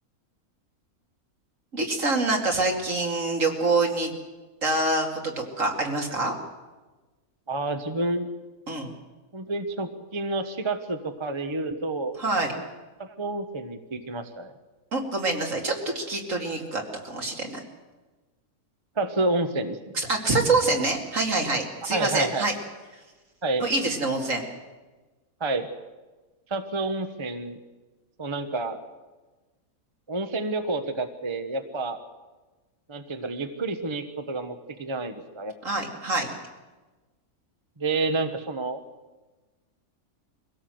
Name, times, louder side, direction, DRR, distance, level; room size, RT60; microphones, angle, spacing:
voice 1, 1.7-4.1 4.6-6.3 8.7-8.9 12.2-12.5 14.9-17.6 19.9-22.5 23.6-24.4 35.6-36.3, right 2 dB, 60° right, 1 dB, 3.0 m, -26 dB
voice 2, 7.5-8.3 9.3-12.2 12.5-12.7 13.0-14.5 19.0-20.0 21.9-22.5 23.4-23.7 25.4-25.7 26.5-27.6 28.2-28.8 30.1-32.0 32.9-35.5 37.8-38.8, right 2 dB, 20° right, 8 dB, 1.0 m, -29 dB
23.0 x 17.0 x 7.8 m, 1.2 s
omnidirectional pair, 1.5 m